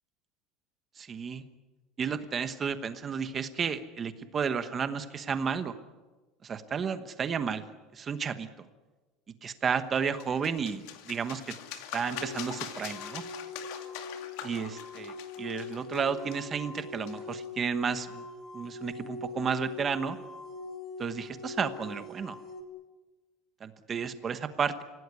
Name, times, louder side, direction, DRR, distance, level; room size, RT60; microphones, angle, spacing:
voice 1, 1.0-1.4 2.0-5.8 6.4-7.6 7.9-8.5 9.4-11.4 11.9-13.2 14.4-18.2 18.5-20.2 21.0-22.4 23.6-24.8, right 6 dB, 20° right, 11 dB, 1.1 m, -32 dB
sound 1, 9.9-17.5, left 10 dB, 60° left, 2.3 m, -43 dB
sound 2, 12.0-22.6, left 4 dB, 25° left, 2.3 m, -42 dB
25.5 x 17.0 x 9.6 m, 1.2 s
cardioid pair, 180°, 0 cm